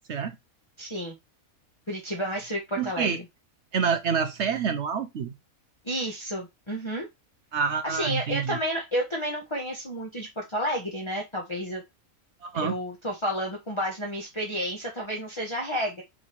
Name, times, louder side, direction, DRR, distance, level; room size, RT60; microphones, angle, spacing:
voice 1, 0.8-1.2 1.9-3.2 5.8-7.1 7.8-11.8 12.5-16.0, equal, 20° left, 1.2 m, -31 dB
voice 2, 2.8-3.2 3.7-5.3 7.5-8.6 12.4-12.8, right 6 dB, 60° right, 0.9 m, -27 dB
6.0 x 3.6 x 4.5 m
omnidirectional pair, 1.5 m